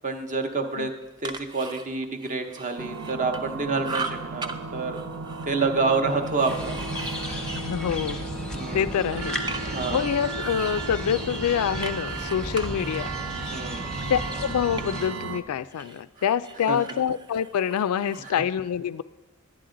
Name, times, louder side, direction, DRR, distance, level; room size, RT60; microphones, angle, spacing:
voice 1, 0.0-0.9 1.2-5.0 5.5-6.8 8.5-8.9 9.6-10.1 13.5-13.9 16.7-16.8, right 3 dB, 35° right, 5 dB, 0.8 m, -28 dB
sound 1, 1.0-3.6 3.8-4.6 4.9-8.5 8.9-9.9 10.4-15.4 15.7-18.3, right 3 dB, 20° right, 0.4 m, -40 dB
sound 2, 2.8-15.4, right 4 dB, 75° right, 0.6 m, -35 dB
sound 3, 6.5-15.1, left 1 dB, 5° left, 0.9 m, -35 dB
voice 2, 7.5-8.2 8.7-9.4 9.9-13.1 14.1-19.0, left 8 dB, 80° left, 16 dB, 0.3 m, -26 dB
11.0 x 9.3 x 3.8 m, 1.1 s
head